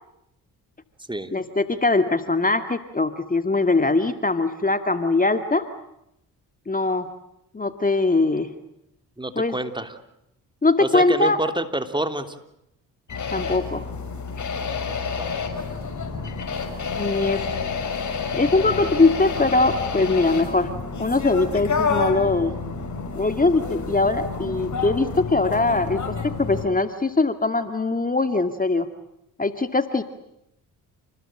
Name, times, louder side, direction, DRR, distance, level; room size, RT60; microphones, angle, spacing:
voice 1, 1.3-5.7 6.7-7.1 7.5-8.5 9.4-9.5 10.6-11.4 13.3-13.9 17.0-17.4 18.3-20.7 21.0-22.6 23.2-28.9 29.4-30.0, left 3 dB, 20° left, 9 dB, 2.1 m, -21 dB
voice 2, 9.2-9.9 10.8-12.3 15.2-15.5, right 1 dB, 10° right, 8 dB, 3.2 m, -28 dB
sound 1, 13.1-26.7, left 5 dB, 50° left, 6.6 m, -29 dB
29.5 x 20.5 x 9.0 m, 0.81 s
supercardioid pair, 60°, 37 cm